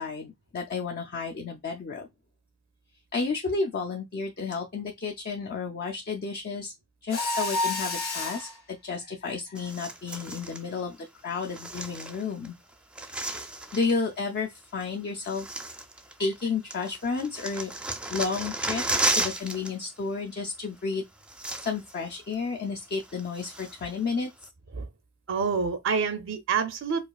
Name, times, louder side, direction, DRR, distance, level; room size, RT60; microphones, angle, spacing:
voice 1, 0.0-2.1 3.1-6.7 7.0-11.0 11.2-12.5 13.7-15.5 16.2-17.7 18.1-21.0 21.6-24.3, left 4 dB, 50° left, 0.5 m, -31 dB
Mechanisms, 7.1-8.6, left 2 dB, 80° left, 1.5 m, -29 dB
sound 1, 9.6-10.6 11.4-12.5 12.7-14.0 14.8-14.9 15.2-16.4 16.7-19.7 20.0-20.2 20.9-21.0 21.2-22.0 22.3-22.4 22.9-23.9 24.4-24.5, right 2 dB, 5° right, 0.4 m, -33 dB
voice 2, 25.3-27.1, right 5 dB, 65° right, 0.5 m, -27 dB
4.8 x 2.3 x 2.3 m
head